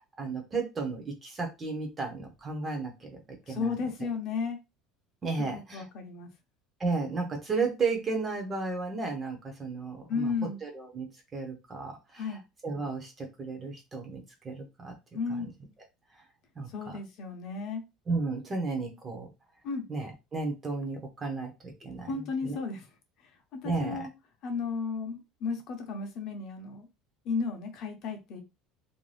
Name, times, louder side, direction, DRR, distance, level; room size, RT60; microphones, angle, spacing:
voice 1, 0.0-3.8 5.2-5.9 6.8-11.1 11.3-14.9 15.3-15.5 16.6-17.0 18.1-19.3 19.9-22.6 23.6-24.1, right 4 dB, 15° right, 3 dB, 0.6 m, -34 dB
voice 2, 3.5-4.6 5.4-6.3 10.1-10.6 12.2-12.4 15.1-15.5 16.7-17.8 19.6-19.8 21.8-22.8 23.5-24.1 24.4-26.9 27.2-28.4, left 4 dB, 40° left, 4 dB, 0.6 m, -34 dB
2.6 x 2.2 x 3.2 m, 0.24 s
cardioid pair, 175°, 0 cm